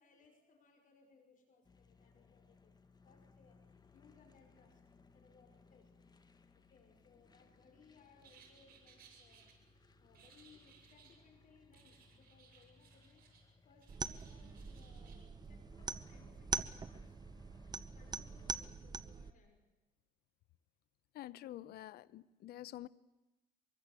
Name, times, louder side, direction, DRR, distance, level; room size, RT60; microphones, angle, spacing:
voice 1, 0.0-2.8 3.0-4.8 5.1-5.9 6.5-9.7 10.0-17.2 17.8-19.6, left 5 dB, 50° left, 5.8 m, -67 dB
sound 1, 1.6-18.7, left 4 dB, 25° left, 1.9 m, -66 dB
sound 2, 8.2-9.5 10.1-11.2 11.7-13.5 13.8-15.2, right 6 dB, 60° right, 6.7 m, -64 dB
sound 3, 13.9-19.3, right 4 dB, 25° right, 1.0 m, -43 dB
voice 2, 21.1-22.9, left 14 dB, 70° left, 0.8 m, -48 dB
24.5 x 23.5 x 8.3 m
cardioid pair, 110°, 17 cm